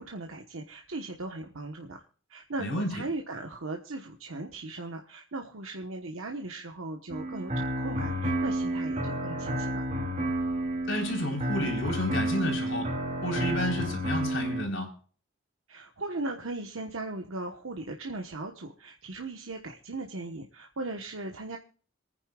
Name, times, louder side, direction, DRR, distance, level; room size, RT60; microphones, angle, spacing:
voice 1, 0.0-2.0 2.3-9.8 15.7-21.6, right 2 dB, 85° right, 3 dB, 1.2 m, -38 dB
voice 2, 2.6-3.0 10.9-12.9 13.2-14.9, left 1 dB, 70° left, 1 dB, 4.0 m, -31 dB
sound 1, 7.1-14.6, right 1 dB, 35° right, 3.0 m, -31 dB
27.0 x 9.8 x 2.4 m, 0.41 s
head